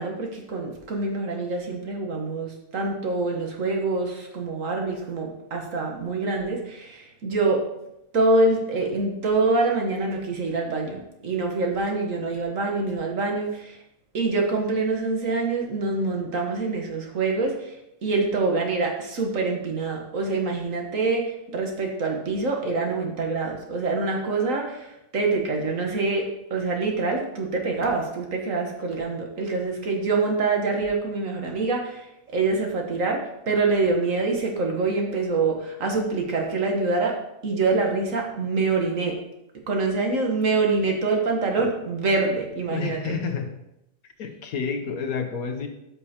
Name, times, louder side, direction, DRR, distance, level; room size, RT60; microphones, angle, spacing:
voice 1, 0.0-7.7 8.1-13.8 14.1-37.2 37.4-39.2 39.7-43.1, right 3 dB, 60° right, 2 dB, 1.6 m, -25 dB
voice 2, 42.7-43.6 44.2-45.7, left 5 dB, 70° left, 5 dB, 1.3 m, -29 dB
13.0 x 5.5 x 2.9 m, 0.86 s
omnidirectional pair, 1.7 m